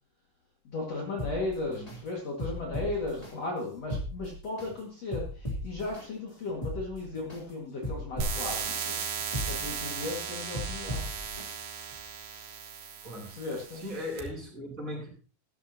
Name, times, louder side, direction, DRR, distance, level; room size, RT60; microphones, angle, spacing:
voice 1, 0.6-9.0 9.5-11.0 13.2-13.8, left 2 dB, 50° left, -2 dB, 2.9 m, -36 dB
sound 1, 1.2-2.0 2.4-3.3 3.8-4.7 5.1-6.0 6.5-7.4 7.8-8.7 9.2-10.1 10.5-11.5 11.9-12.0, equal, 10° left, 2.9 m, -37 dB
sound 2, 8.2-14.2, right 6 dB, 85° right, 3.7 m, -36 dB
voice 2, 13.0-13.3 13.7-15.1, left 1 dB, 20° right, -2 dB, 5.8 m, -38 dB
13.5 x 12.5 x 2.9 m, 0.36 s
omnidirectional pair, 4.3 m